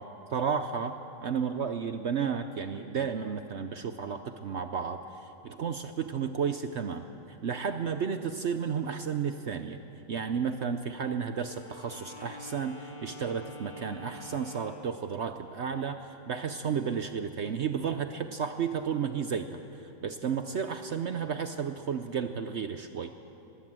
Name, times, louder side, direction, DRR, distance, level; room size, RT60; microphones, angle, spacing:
voice 1, 0.0-9.8 10.1-23.1, right 6 dB, 65° right, 8 dB, 0.6 m, -33 dB
Wind instrument woodwind instrument, 11.4-14.9, left 1 dB, 70° left, 4.0 m, -46 dB
21.5 x 16.5 x 7.6 m, 2.8 s
omnidirectional pair, 2.0 m